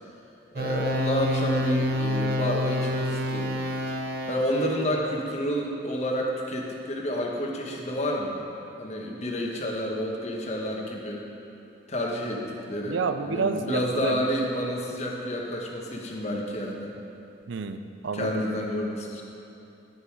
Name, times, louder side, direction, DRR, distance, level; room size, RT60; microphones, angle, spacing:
voice 1, 0.5-3.6 4.3-8.4 8.8-11.3 11.9-13.0 13.2-16.9 18.1-19.2, equal, 35° left, -1 dB, 1.1 m, -29 dB
sound 1, 0.6-5.0, left 1 dB, 55° right, 0.7 m, -28 dB
voice 2, 12.9-14.3 17.5-18.4, right 4 dB, 90° right, 9 dB, 0.5 m, -29 dB
10.5 x 6.8 x 4.7 m, 2.9 s
head